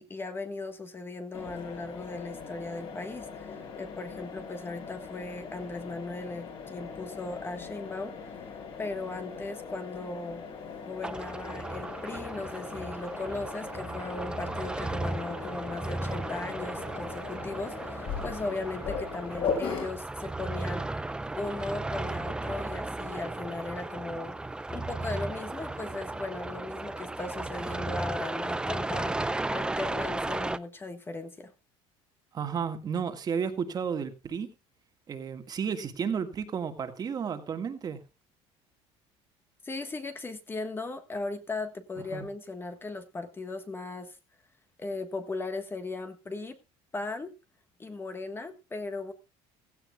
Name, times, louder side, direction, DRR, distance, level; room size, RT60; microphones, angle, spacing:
voice 1, 0.0-8.3 8.8-10.4 10.8-24.4 24.7-31.5 39.6-44.2 44.8-46.6 46.9-47.3 47.8-49.1, left 3 dB, 20° left, 1.4 m, -37 dB
Mechanisms, 1.3-19.9, left 5 dB, 45° left, 5.7 m, -39 dB
sound 1, 11.0-30.6, right 2 dB, 5° right, 0.5 m, -35 dB
voice 2, 32.3-34.5 35.1-38.0 42.1-42.3, right 6 dB, 30° right, 1.8 m, -32 dB
16.5 x 15.0 x 2.3 m
cardioid pair, 135°, 13 cm